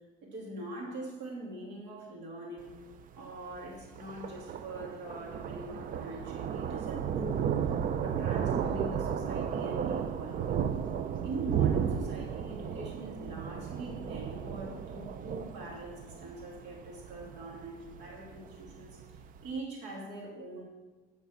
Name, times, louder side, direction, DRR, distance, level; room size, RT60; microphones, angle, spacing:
voice 1, 0.2-2.7 3.2-7.5 8.0-10.6 11.2-20.6, right 2 dB, 85° right, -2 dB, 2.5 m, -43 dB
Thunder, 2.6-19.5, right 8 dB, 55° right, 0.5 m, -34 dB
9.1 x 5.2 x 5.8 m, 1.3 s
cardioid pair, 110°, 17 cm